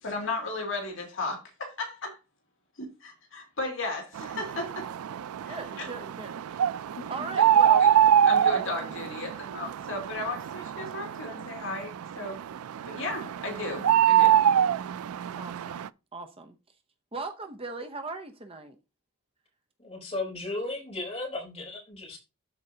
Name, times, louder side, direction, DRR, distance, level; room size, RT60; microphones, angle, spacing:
voice 1, 0.0-2.2 2.8-4.9 5.5-5.9 6.9-7.0 7.8-7.9 8.2-12.4 12.9-14.5, left 2 dB, 60° left, 2.5 m, -35 dB
sound 1, 4.1-15.9, right 9 dB, 90° right, 0.4 m, -25 dB
voice 2, 5.5-6.4 7.1-7.8 15.4-15.9 16.1-16.6 17.1-18.8, right 3 dB, 25° right, 0.7 m, -38 dB
voice 3, 19.8-22.2, left 2 dB, 30° left, 3.9 m, -35 dB
13.0 x 4.7 x 2.8 m
head